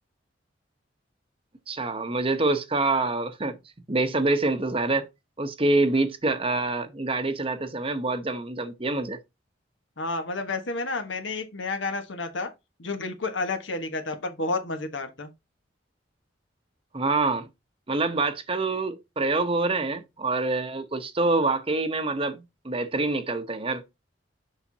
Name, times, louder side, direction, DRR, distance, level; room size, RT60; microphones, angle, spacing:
voice 1, 1.7-3.6 3.9-5.1 5.4-9.2 16.9-17.5 17.9-23.8, right 2 dB, 30° right, 0.8 m, -26 dB
voice 2, 10.0-12.5 12.8-15.3, left 3 dB, 90° left, 1.3 m, -30 dB
7.1 x 5.6 x 2.7 m
head